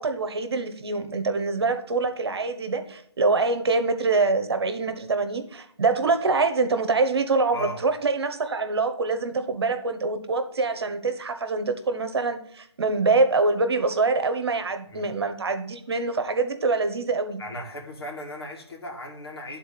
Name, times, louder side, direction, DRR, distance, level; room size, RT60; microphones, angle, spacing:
voice 1, 0.0-17.4, right 3 dB, 65° right, 1.1 m, -25 dB
voice 2, 17.4-19.6, equal, 60° left, 2.4 m, -36 dB
10.0 x 4.0 x 5.8 m
hypercardioid pair, 155°, 14 cm